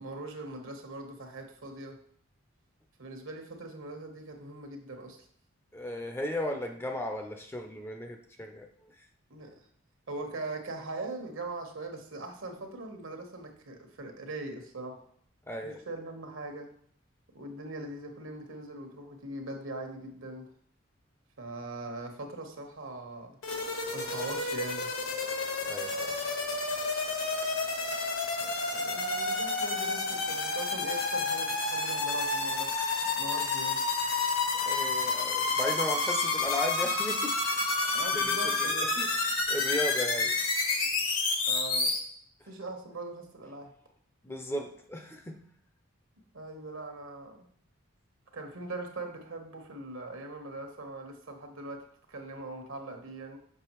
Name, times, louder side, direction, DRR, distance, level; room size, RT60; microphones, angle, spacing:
voice 1, 0.0-2.0 3.0-5.3 9.3-9.6 10.1-15.0 15.6-16.7 17.3-20.5 21.4-23.4 23.9-24.9 28.4-32.8 33.2-33.8 37.7-38.9 41.5-41.9 42.5-43.7 46.3-47.5 48.3-53.4, right 2 dB, 70° right, 4 dB, 1.2 m, -41 dB
voice 2, 5.7-8.7 15.5-15.8 25.6-26.1 34.6-38.7 39.0-39.1 39.5-40.4 44.2-45.4, left 1 dB, 10° left, 4 dB, 0.5 m, -36 dB
sound 1, 23.4-42.0, left 3 dB, 75° left, 1.4 m, -30 dB
6.7 x 5.9 x 3.0 m, 0.63 s
head